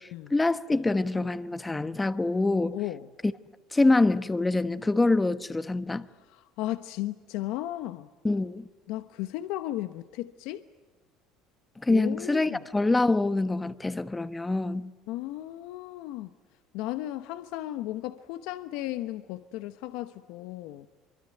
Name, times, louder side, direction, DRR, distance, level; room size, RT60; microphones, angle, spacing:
voice 1, 0.0-2.8 3.7-6.1 8.2-8.7 11.8-14.9, left 2 dB, 15° left, 1.1 m, -25 dB
voice 2, 2.7-3.1 6.2-8.1 8.9-10.6 11.9-12.6 15.1-16.3 16.7-20.9, left 15 dB, 75° left, 1.0 m, -35 dB
24.5 x 24.0 x 9.2 m
supercardioid pair, 110°, 0 cm